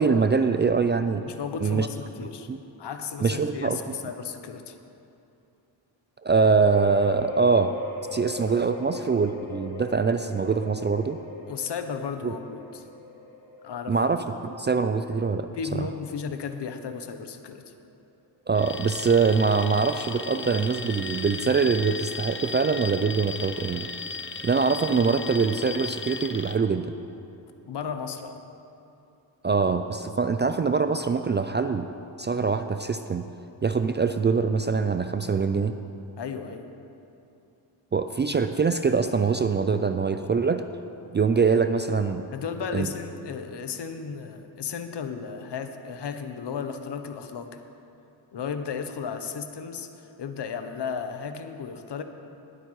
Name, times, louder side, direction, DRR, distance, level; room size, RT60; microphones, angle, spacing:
voice 1, 0.0-1.2 1.6-1.9 2.5-2.6 3.2-3.8 6.2-7.8 8.1-11.2 12.2-12.3 13.9-15.5 15.8-15.9 18.5-23.9 24.4-26.9 29.4-31.9 32.2-33.3 33.6-35.8 37.9-40.6 41.1-42.3 42.7-42.9, right 5 dB, 25° right, 9 dB, 0.3 m, -23 dB
voice 2, 1.3-2.5 2.8-4.8 11.5-12.9 13.6-14.0 15.5-17.7 27.7-28.4 36.2-36.7 42.3-47.6 48.3-52.0, left 6 dB, 60° left, 8 dB, 0.9 m, -34 dB
sound 1, 6.7-16.2 16.6-16.7 17.1-17.2, left 2 dB, 85° left, 3.0 m, -41 dB
Alarm, 18.5-26.6, left 4 dB, 25° left, 0.7 m, -36 dB
19.0 x 8.1 x 3.2 m, 2.8 s
cardioid pair, 55°, 47 cm